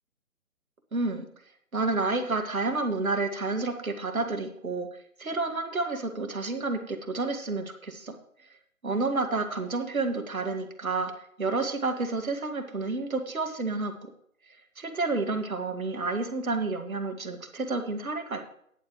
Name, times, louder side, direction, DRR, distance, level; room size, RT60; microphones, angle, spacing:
voice 1, 0.9-1.3 1.7-4.9 5.2-8.2 8.8-11.1 11.4-14.1 14.8-18.4, right 3 dB, 75° right, 6 dB, 2.1 m, -30 dB
14.0 x 10.5 x 3.1 m, 0.67 s
figure-of-eight pair, 150°, 43 cm